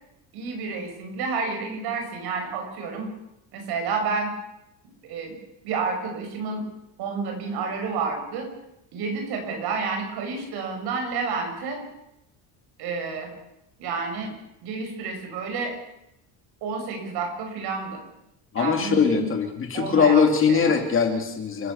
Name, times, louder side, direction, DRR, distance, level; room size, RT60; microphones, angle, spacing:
voice 1, 0.3-3.1 3.5-4.3 5.1-5.4 5.6-6.7 7.0-8.5 8.9-11.8 12.8-13.3 13.8-14.3 14.6-15.7 16.6-18.0 18.6-19.3 19.7-20.8, right 4 dB, 60° right, 4 dB, 6.6 m, -30 dB
voice 2, 18.5-21.7, left 6 dB, 30° left, 4 dB, 2.7 m, -21 dB
29.5 x 14.0 x 7.1 m, 0.86 s
cardioid pair, 170°, 43 cm